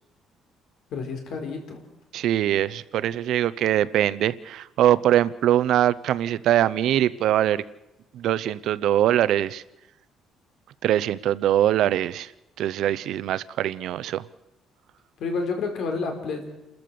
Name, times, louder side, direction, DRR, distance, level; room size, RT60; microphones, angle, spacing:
voice 1, 0.9-1.8 15.2-16.5, left 4 dB, 60° left, 4 dB, 4.5 m, -29 dB
voice 2, 2.1-7.6 8.1-9.6 10.8-12.3 12.6-14.2, right 12 dB, 60° right, 17 dB, 0.6 m, -22 dB
29.0 x 14.0 x 6.9 m, 0.93 s
cardioid pair, 170°, 0 cm